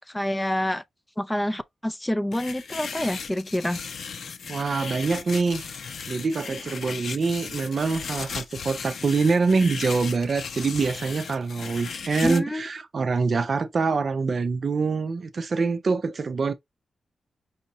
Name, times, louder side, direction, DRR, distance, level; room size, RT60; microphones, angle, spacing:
voice 1, 0.1-0.8 1.2-3.8 12.2-12.7, left 1 dB, 10° left, 0.4 m, -27 dB
sound 1, 2.3-12.4, left 6 dB, 70° left, 0.7 m, -36 dB
voice 2, 4.5-5.6 6.1-16.5, right 4 dB, 45° right, 0.5 m, -25 dB
5.6 x 2.7 x 2.9 m
wide cardioid pair, 125°, 0 cm